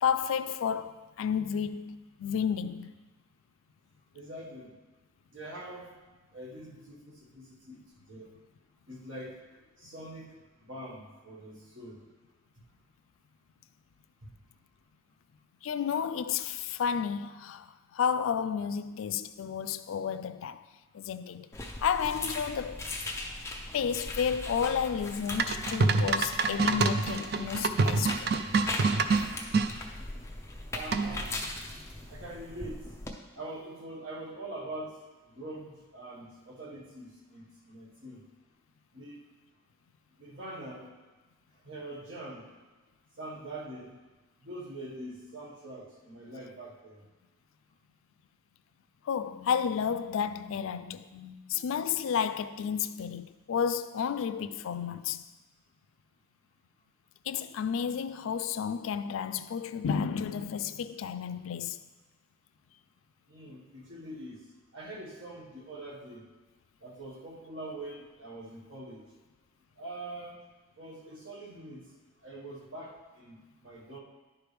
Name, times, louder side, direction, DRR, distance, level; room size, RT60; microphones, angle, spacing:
voice 1, 0.0-2.9 15.6-20.7 20.9-21.5 21.8-22.9 23.7-28.3 49.0-55.2 57.3-61.8, left 7 dB, 90° left, 0.3 m, -31 dB
voice 2, 4.1-4.7 5.3-5.9 6.3-7.8 8.1-8.3 8.9-9.4 9.8-12.0 12.6-12.7 14.2-14.3 30.7-31.3 32.1-32.9 33.3-35.0 35.3-38.2 38.9-39.2 40.2-40.9 41.6-42.5 43.2-44.0 44.4-47.0 63.3-64.4 64.7-66.2 66.8-69.0 69.8-70.4 70.8-71.9 72.2-74.0, right 1 dB, 80° right, 1.6 m, -43 dB
sound 1, 21.5-33.1, left 2 dB, 15° left, 0.5 m, -39 dB
sound 2, 25.4-29.7 30.9-31.3, right 4 dB, 50° right, 0.3 m, -26 dB
10.5 x 4.7 x 3.4 m
head